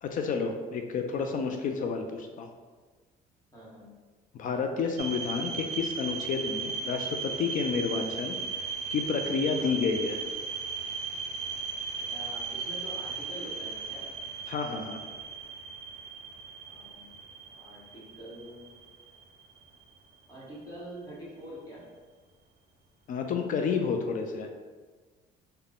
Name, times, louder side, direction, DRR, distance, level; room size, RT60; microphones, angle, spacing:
voice 1, 0.0-2.5 4.3-8.4 8.9-10.2 14.5-15.2 23.1-24.5, left 5 dB, 50° left, 4 dB, 0.4 m, -30 dB
voice 2, 3.5-3.9 7.8-8.0 9.5-9.8 12.0-14.1 16.6-17.2 17.5-18.7 20.3-21.9, right 1 dB, 20° left, -7 dB, 1.4 m, -45 dB
sound 1, 5.0-19.9, right 5 dB, 45° right, 0.6 m, -37 dB
3.6 x 2.1 x 3.7 m, 1.4 s
cardioid pair, 110°, 17 cm